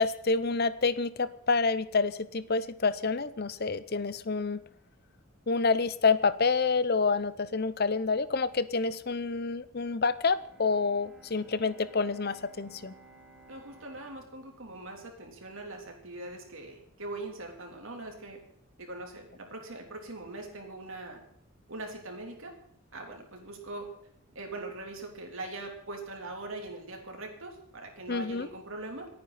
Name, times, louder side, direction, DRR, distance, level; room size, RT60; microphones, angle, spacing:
voice 1, 0.0-4.6 5.5-12.9 28.1-28.5, left 4 dB, 45° left, 15 dB, 0.7 m, -28 dB
Bowed string instrument, 10.3-16.3, right 2 dB, ahead, 2.9 m, -57 dB
voice 2, 13.5-18.4 18.8-21.2 21.7-22.5 22.9-23.9 24.3-29.1, right 2 dB, 60° right, 2 dB, 3.4 m, -41 dB
27.0 x 9.6 x 4.2 m, 0.68 s
head